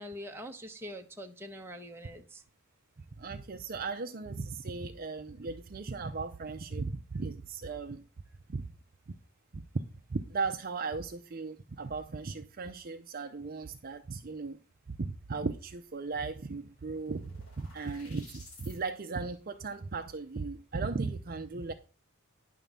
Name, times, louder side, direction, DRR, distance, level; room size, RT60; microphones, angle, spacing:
voice 1, 0.0-2.4, equal, 10° right, 0.9 m, -44 dB
voice 2, 3.2-8.0 8.5-8.6 9.5-9.6 10.1-14.6 15.0-21.7, right 4 dB, 40° right, 0.5 m, -37 dB
sound 1, 15.9-16.0 16.3-18.8, left 3 dB, 80° left, 3.4 m, -55 dB
10.0 x 3.7 x 6.8 m
head